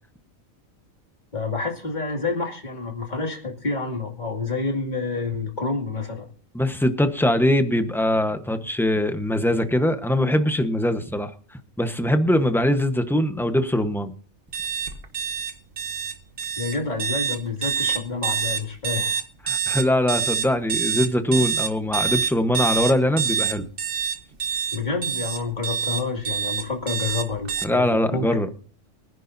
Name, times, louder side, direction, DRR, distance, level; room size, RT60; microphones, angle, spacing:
voice 1, 1.3-6.3 16.6-19.2 24.7-28.3, left 3 dB, 35° left, 1 dB, 2.6 m, -28 dB
voice 2, 6.5-14.1 19.4-23.7 27.6-28.5, left 1 dB, ahead, 8 dB, 1.0 m, -22 dB
sound 1, 14.5-27.6, right 7 dB, 45° right, 1.3 m, -26 dB
24.0 x 10.5 x 2.7 m, 0.40 s
omnidirectional pair, 1.4 m